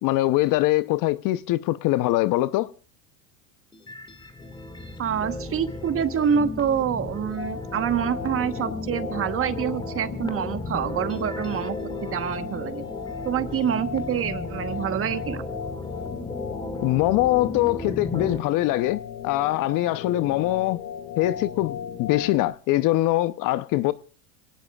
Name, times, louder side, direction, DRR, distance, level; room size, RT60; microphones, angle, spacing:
voice 1, 0.0-2.7 16.8-20.8 21.2-23.9, left 16 dB, 45° left, 0.8 m, -23 dB
sound 1, 3.7-18.4, left 2 dB, 10° left, 1.9 m, -35 dB
voice 2, 5.0-12.8 13.2-15.4, right 8 dB, 30° right, 1.2 m, -26 dB
sound 2, 7.4-22.5, left 8 dB, 65° left, 2.4 m, -37 dB
26.0 x 18.0 x 2.4 m
hypercardioid pair, 100°, 43 cm